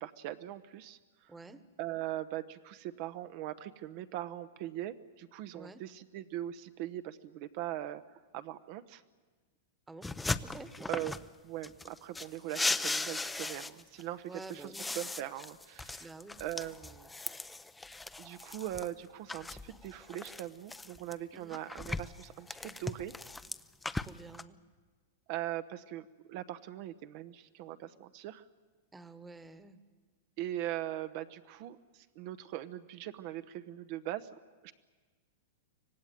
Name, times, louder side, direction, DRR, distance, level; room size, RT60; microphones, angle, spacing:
voice 1, 0.0-1.3 1.8-8.0 8.3-9.0 10.9-11.1 11.4-16.1 16.4-17.1 18.2-23.1 25.3-28.4 30.4-34.7, right 13 dB, 50° right, 10 dB, 0.9 m, -41 dB
voice 2, 1.3-1.6 5.5-5.8 9.9-10.1 10.4-10.9 14.3-14.9 16.0-16.4 21.3-21.6 23.9-24.6 28.9-29.8, right 3 dB, 10° right, 11 dB, 1.3 m, -49 dB
sound 1, 10.0-11.3 11.6-14.0 14.4-18.9 19.3-21.1 21.5-24.4, left 3 dB, 10° left, 0.6 m, -38 dB
25.0 x 18.0 x 9.2 m, 1.4 s
hypercardioid pair, 130°, 0 cm